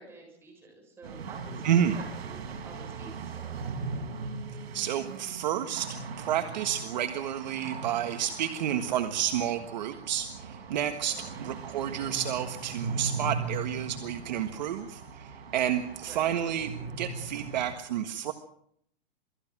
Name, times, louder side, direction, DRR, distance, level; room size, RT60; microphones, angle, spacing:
voice 1, 0.0-3.7 11.2-11.5 16.0-16.3, right 2 dB, 5° right, 0 dB, 6.8 m, -49 dB
sound 1, 1.0-17.7, right 4 dB, 70° right, 6.4 m, -39 dB
voice 2, 1.6-2.0 4.7-18.3, right 10 dB, 45° right, 7 dB, 1.6 m, -30 dB
27.5 x 20.0 x 6.1 m, 0.68 s
supercardioid pair, 180°, 31 cm